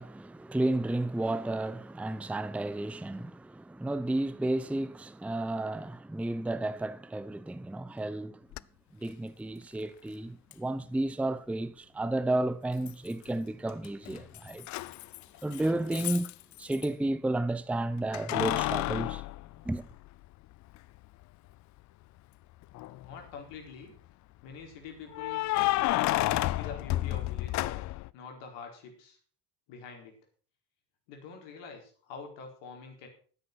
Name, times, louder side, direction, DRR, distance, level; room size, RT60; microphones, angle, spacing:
voice 1, 0.0-8.4 8.9-14.7 15.4-16.3 16.6-19.2 19.6-19.9, right 2 dB, 5° right, 0.7 m, -32 dB
Keys jangling, 8.5-8.6 10.5-10.6 12.9-13.4 13.7-16.9 18.1-20.3 20.7-20.8 22.6-23.2 25.1-28.1, left 17 dB, 40° left, 0.5 m, -31 dB
voice 2, 23.0-23.9 24.4-25.4 26.1-27.8 28.1-29.2 29.7-30.2 31.1-33.1, left 5 dB, 60° left, 4.4 m, -45 dB
13.5 x 9.7 x 6.1 m
figure-of-eight pair, 55°, 47 cm